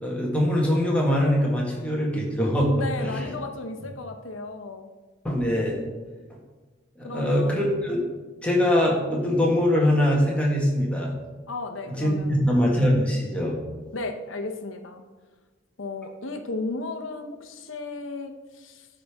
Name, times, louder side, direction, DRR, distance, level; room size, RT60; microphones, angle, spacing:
voice 1, 0.0-2.7 3.0-3.3 5.2-5.8 7.0-8.0 8.4-11.1 11.9-13.6, left 1 dB, 5° left, -3 dB, 1.5 m, -23 dB
voice 2, 2.7-4.9 7.0-7.7 11.5-12.4 13.9-15.0 15.8-18.9, left 2 dB, 65° left, 6 dB, 0.8 m, -34 dB
13.0 x 5.1 x 3.5 m, 1.3 s
head